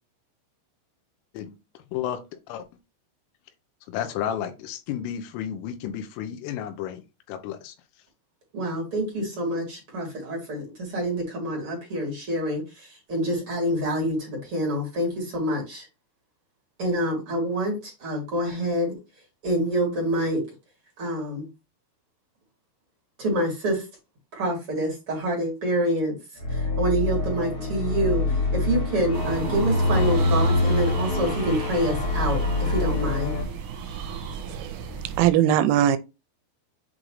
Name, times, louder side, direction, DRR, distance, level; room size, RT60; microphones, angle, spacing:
voice 1, 3.9-7.8, left 10 dB, 85° left, 3.4 m, -32 dB
voice 2, 8.5-15.8 16.8-18.9 19.4-20.4 21.0-21.5 23.2-23.8 24.3-26.2 26.5-28.2 28.5-33.4, right 1 dB, 35° right, 2.7 m, -27 dB
sound 1, 26.4-33.4, left 2 dB, 50° left, 3.4 m, -25 dB
sound 2, 29.1-35.3, right 6 dB, 65° right, 3.1 m, -33 dB
voice 3, 34.5-36.0, right 11 dB, 85° right, 3.0 m, -21 dB
8.1 x 3.8 x 3.1 m
omnidirectional pair, 5.7 m